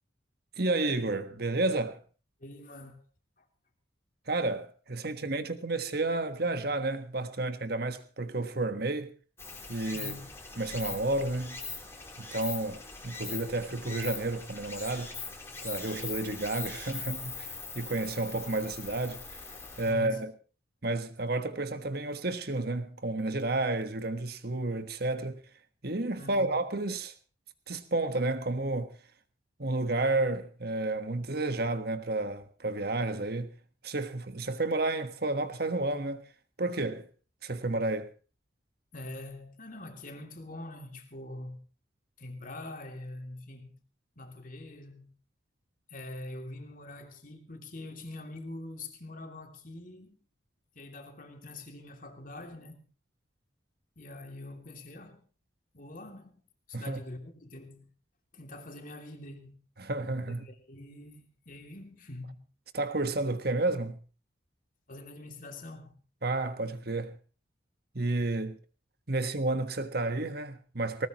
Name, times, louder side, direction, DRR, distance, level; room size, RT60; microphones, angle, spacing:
voice 1, 0.6-2.0 4.3-9.1 9.7-10.1 10.6-11.6 12.2-15.1 15.6-17.5 17.7-19.4 19.8-20.3 20.8-25.4 25.8-27.1 27.7-28.9 29.6-33.5 33.8-36.2 36.6-37.1 37.4-38.1 56.7-57.0 59.8-60.5 62.7-64.0 66.2-67.2 67.9-68.6 69.1-71.1, right 2 dB, 55° right, 1.4 m, -31 dB
voice 2, 2.4-3.0 3.4-3.5 9.9-10.3 19.8-20.2 26.2-26.6 38.9-41.6 42.2-43.8 44.2-45.1 45.9-50.2 50.7-52.9 54.0-55.2 55.7-56.4 56.7-57.9 58.3-59.6 60.2-62.5 64.9-66.0, left 2 dB, 45° left, 2.9 m, -44 dB
Stream, 9.4-19.9, left 4 dB, 15° left, 3.6 m, -41 dB
20.0 x 19.0 x 3.1 m
head